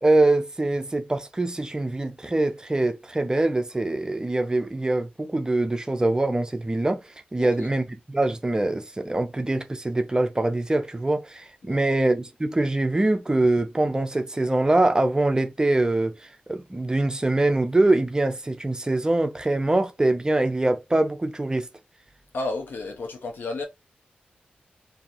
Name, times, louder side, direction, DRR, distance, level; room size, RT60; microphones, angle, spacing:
voice 1, 0.0-21.7, right 2 dB, 20° right, 0.5 m, -24 dB
voice 2, 7.4-7.7 11.6-11.9 22.3-23.6, left 2 dB, 80° left, 0.8 m, -32 dB
2.7 x 2.6 x 2.5 m
cardioid pair, 60°, 3 cm